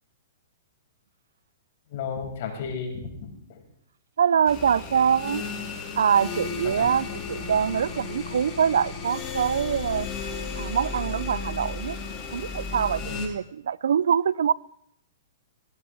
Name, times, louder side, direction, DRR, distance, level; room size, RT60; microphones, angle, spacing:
voice 1, 1.9-3.6 6.6-6.8 13.0-13.2, left 6 dB, 60° left, 5.9 m, -34 dB
voice 2, 4.2-5.4 6.0-10.1 10.6-12.0 12.3-14.5, right 8 dB, 75° right, 0.5 m, -24 dB
sound 1, 4.5-13.3, left 5 dB, 35° left, 4.3 m, -34 dB
19.5 x 18.0 x 3.5 m
hypercardioid pair, 125°, 0 cm